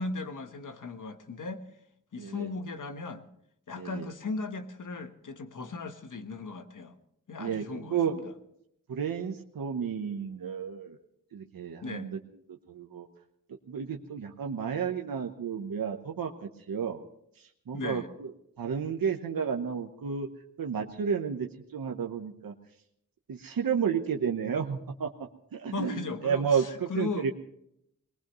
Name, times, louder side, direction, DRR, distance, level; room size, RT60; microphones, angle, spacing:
voice 1, 0.0-1.6 2.1-3.2 3.7-6.9 7.3-8.2 11.8-12.1 17.7-18.1 25.7-27.3, left 3 dB, 65° left, 7 dB, 1.3 m, -37 dB
voice 2, 2.2-2.5 3.7-4.1 7.4-8.1 8.9-11.0 11.3-12.2 12.5-13.1 13.7-17.0 17.4-18.3 18.6-20.3 20.6-22.5 23.3-25.1 25.5-27.3, right 7 dB, 80° right, 3 dB, 1.1 m, -32 dB
22.5 x 19.5 x 3.1 m, 0.75 s
wide cardioid pair, 165°, 34 cm